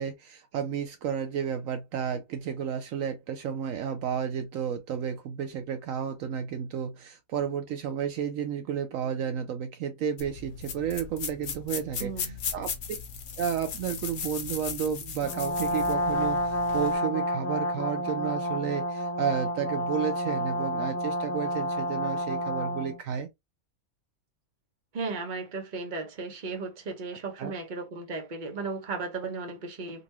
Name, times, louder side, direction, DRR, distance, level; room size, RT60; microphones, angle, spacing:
voice 1, 0.0-13.0 13.4-23.3 27.4-27.5, right 8 dB, 75° right, 1.0 m, -32 dB
sound 1, 10.2-16.9, left 6 dB, 80° left, 1.3 m, -37 dB
voice 2, 12.0-12.4 24.9-30.0, right 4 dB, 40° right, 1.0 m, -35 dB
Brass instrument, 15.2-23.0, equal, 10° left, 0.8 m, -29 dB
3.9 x 2.5 x 2.9 m
omnidirectional pair, 1.5 m